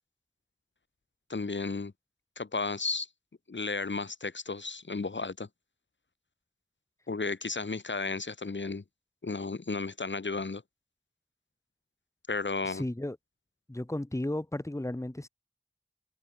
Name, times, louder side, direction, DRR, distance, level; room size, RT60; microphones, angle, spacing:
voice 1, 1.3-1.9 2.4-3.1 3.5-5.5 7.1-8.8 9.2-10.6 12.3-12.8, left 3 dB, 75° left, 2.8 m, -33 dB
voice 2, 12.6-13.2 13.7-15.3, left 1 dB, 15° left, 1.6 m, -34 dB
wide cardioid pair, 45°, 19 cm